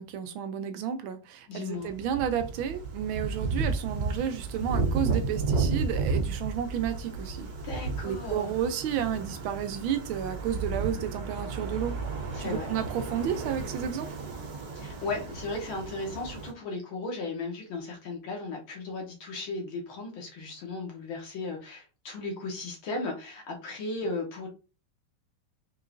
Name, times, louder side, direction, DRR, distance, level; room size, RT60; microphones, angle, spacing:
voice 1, 0.0-7.5 8.0-11.9 12.4-14.1, right 9 dB, 80° right, 1.4 m, -32 dB
voice 2, 1.5-1.9 7.6-8.5 12.3-12.7 14.8-24.5, left 3 dB, 75° left, 2.2 m, -36 dB
sound 1, 1.8-16.5, right 4 dB, 55° right, 1.6 m, -33 dB
4.7 x 3.7 x 2.5 m
omnidirectional pair, 2.3 m